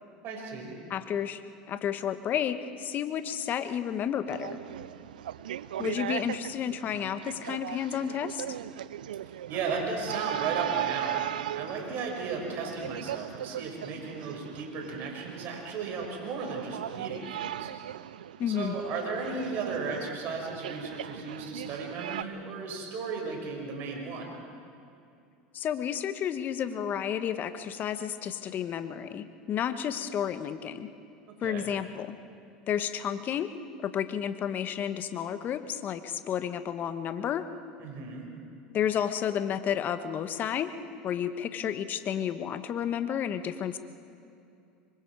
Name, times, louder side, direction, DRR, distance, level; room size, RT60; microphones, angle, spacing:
voice 1, 0.2-0.8 5.8-5.9 9.2-17.7 18.5-24.3 31.4-31.7 37.8-38.3, right 4 dB, 55° right, 0 dB, 6.0 m, -35 dB
voice 2, 0.9-1.4 1.7-4.6 5.8-8.4 18.4-18.7 25.5-30.9 31.4-32.1 32.7-33.5 33.8-37.4 38.7-40.7 41.0-43.8, left 9 dB, 45° left, 10 dB, 1.3 m, -31 dB
sound 1, 4.3-22.2, right 12 dB, 90° right, 0.4 m, -38 dB
26.0 x 24.0 x 4.9 m, 2.6 s
hypercardioid pair, 90°, 4 cm